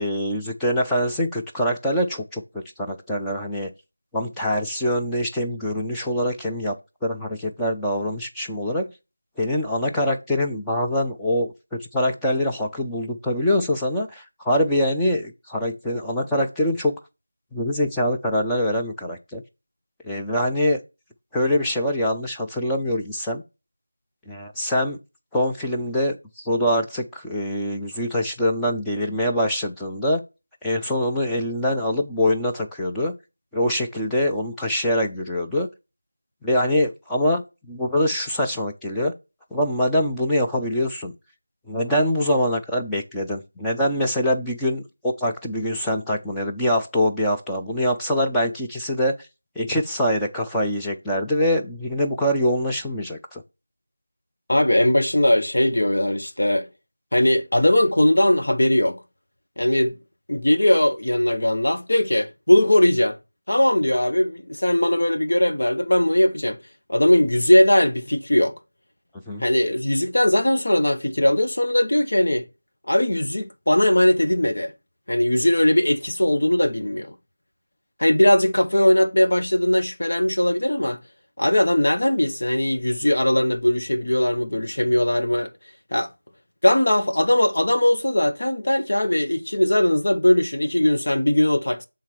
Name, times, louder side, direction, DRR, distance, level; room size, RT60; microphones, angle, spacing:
voice 1, 0.0-3.7 4.1-6.7 7.0-8.9 9.4-16.9 17.5-19.4 20.0-20.8 21.3-23.4 24.3-25.0 25.3-30.2 30.6-33.1 33.5-35.7 36.4-39.1 39.5-41.1 41.7-49.1 49.6-53.4 69.3-69.4, equal, 5° left, 0.5 m, -24 dB
voice 2, 54.5-56.7 57.1-59.0 59.6-60.0 60.3-63.2 63.5-66.6 66.9-68.5 69.4-72.5 72.9-74.7 75.1-77.1 78.0-81.0 81.4-85.5 85.9-86.1 86.6-91.9, left 1 dB, 60° left, 1.2 m, -19 dB
7.3 x 3.7 x 4.4 m
figure-of-eight pair, 170°, 0 cm